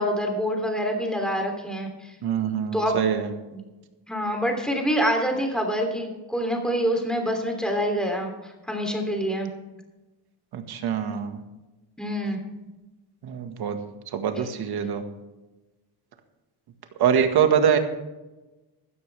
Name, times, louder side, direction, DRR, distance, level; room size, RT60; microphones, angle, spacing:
voice 1, 0.0-2.1 2.7-3.0 3.5-3.6 4.1-9.5 12.0-12.4, equal, ahead, 2 dB, 3.1 m, -26 dB
voice 2, 2.2-3.3 10.5-11.4 13.2-13.8 14.1-15.0 17.0-17.8, right 8 dB, 65° right, 6 dB, 1.8 m, -24 dB
16.0 x 12.5 x 3.5 m, 1.1 s
cardioid pair, 145°, 41 cm